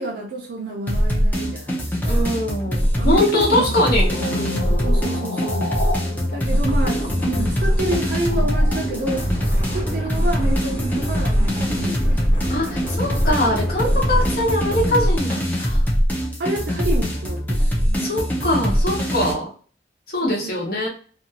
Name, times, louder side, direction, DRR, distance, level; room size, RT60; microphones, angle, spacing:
voice 1, 0.0-2.4 3.0-3.7 4.8-5.7 6.2-9.3 9.7-12.8 16.4-18.5 19.3-19.4 20.2-20.6, right 1 dB, 80° right, -3 dB, 0.6 m, -29 dB
sound 1, 0.9-19.3, equal, 10° left, 0.5 m, -22 dB
voice 2, 2.1-4.1 12.5-15.8 18.0-19.5 20.1-20.9, left 1 dB, 55° left, -3 dB, 0.9 m, -22 dB
sound 2, 3.9-12.3 12.5-12.9, left 2 dB, 85° left, 0.8 m, -33 dB
sound 3, 6.7-15.0, equal, 30° left, 1.1 m, -30 dB
2.7 x 2.3 x 2.7 m, 0.41 s
head